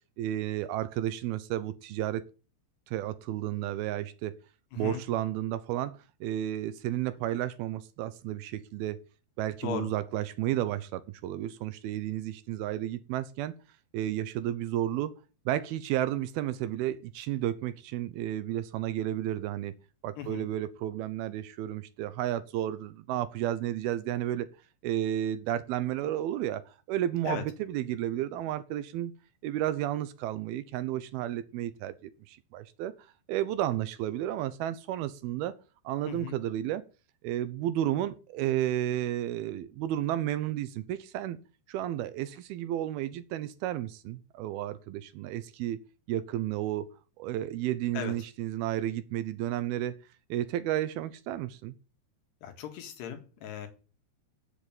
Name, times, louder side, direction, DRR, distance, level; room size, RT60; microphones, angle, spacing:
voice 1, 0.2-2.2 2.9-4.4 4.8-9.0 9.4-13.5 13.9-15.1 15.5-19.7 20.0-24.5 24.8-29.1 29.4-32.9 33.3-35.5 35.8-36.8 37.2-41.4 41.7-45.8 46.1-46.9 47.2-50.0 50.3-51.7, right 12 dB, 80° right, 2.4 m, -32 dB
voice 2, 4.7-5.0 9.6-9.9 20.2-20.5 27.3-27.4 36.1-36.4 47.9-48.1 52.4-53.7, left 8 dB, 80° left, 4.0 m, -37 dB
8.3 x 7.8 x 9.0 m
omnidirectional pair, 4.7 m